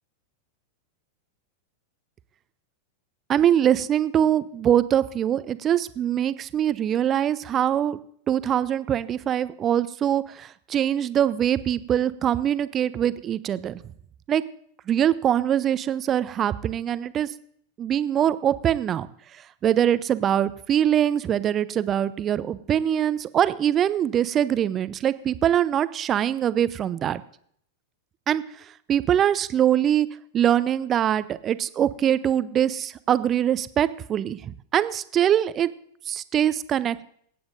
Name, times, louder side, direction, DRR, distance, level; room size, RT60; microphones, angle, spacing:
voice 1, 3.3-8.0 8.3-13.8 14.3-14.4 14.9-17.3 17.8-19.1 19.6-27.2 28.3-28.4 28.9-30.1 30.3-35.7 36.1-37.1, right 10 dB, 30° right, 16 dB, 0.4 m, -23 dB
24.5 x 8.6 x 2.6 m, 0.63 s
figure-of-eight pair, 90°, 0 cm